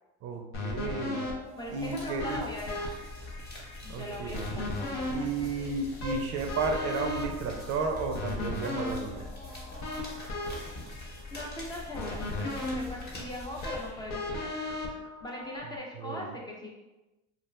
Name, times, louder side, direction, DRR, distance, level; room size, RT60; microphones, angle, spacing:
voice 1, 0.2-1.3 1.7-2.4 3.9-4.7 5.1-9.2 16.0-16.3, right 4 dB, 50° right, 3 dB, 0.5 m, -33 dB
sound 1, 0.5-15.8, left 2 dB, 65° left, 0.7 m, -37 dB
sound 2, 1.5-14.3, left 2 dB, 30° left, 1.0 m, -44 dB
voice 2, 1.6-2.9 3.8-5.3 5.6-5.7 11.3-14.5 15.2-16.7, left 1 dB, 15° left, -2 dB, 0.4 m, -40 dB
2.4 x 2.2 x 3.1 m, 1.0 s
supercardioid pair, 100°, 31 cm